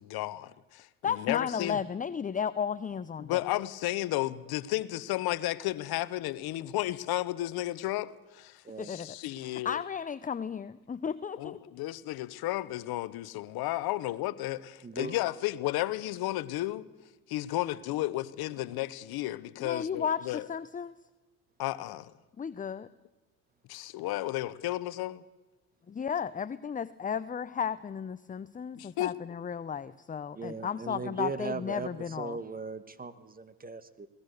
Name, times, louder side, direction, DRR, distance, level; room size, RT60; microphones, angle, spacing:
voice 1, 0.0-1.8 3.2-9.8 11.4-16.9 17.3-20.5 21.6-22.1 23.7-25.2 28.8-29.2, left 16 dB, 70° left, 1.0 m, -33 dB
voice 2, 1.0-3.4 8.8-9.2 9.6-11.6 19.6-21.0 22.4-22.9 25.9-32.4, left 7 dB, 20° left, 0.6 m, -34 dB
voice 3, 8.6-9.0 14.8-15.1 30.3-34.1, right 3 dB, 20° right, 1.5 m, -38 dB
21.5 x 19.0 x 6.6 m
supercardioid pair, 80°, 38 cm